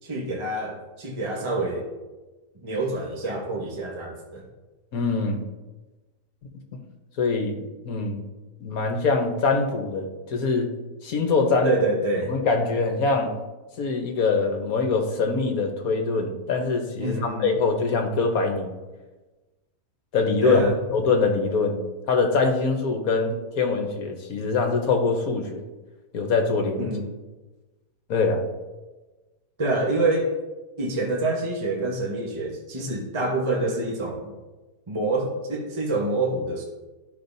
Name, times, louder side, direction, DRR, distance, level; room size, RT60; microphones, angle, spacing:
voice 1, 0.0-1.9 2.6-4.4 11.6-12.3 17.0-17.6 20.4-20.8 26.8-27.1 29.6-30.3 30.8-34.3 34.9-36.6, right 2 dB, 20° right, 0 dB, 1.0 m, -26 dB
voice 2, 4.9-5.4 7.2-8.2 8.6-10.7 11.0-11.7 12.3-13.3 13.8-18.8 20.1-20.6 20.9-21.8 22.1-25.6 26.1-26.9 28.1-28.4, left 4 dB, 60° left, 3 dB, 1.4 m, -23 dB
13.5 x 5.5 x 2.7 m, 1.2 s
omnidirectional pair, 1.8 m